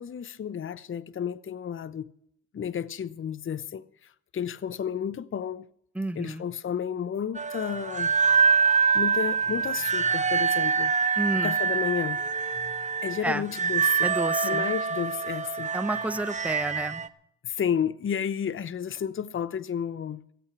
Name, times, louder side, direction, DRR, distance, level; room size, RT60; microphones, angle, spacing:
voice 1, 0.0-2.1 2.5-3.9 4.3-5.6 6.1-8.1 8.9-10.9 11.3-12.2 13.0-14.1 14.4-15.7 17.4-20.2, left 8 dB, 40° left, 0.8 m, -31 dB
voice 2, 5.9-6.4 11.2-11.5 13.2-13.4 14.0-14.7 15.7-17.0, right 2 dB, 5° right, 0.8 m, -30 dB
sound 1, 7.3-17.1, right 5 dB, 20° right, 1.1 m, -25 dB
17.0 x 8.2 x 8.1 m
supercardioid pair, 70°, 33 cm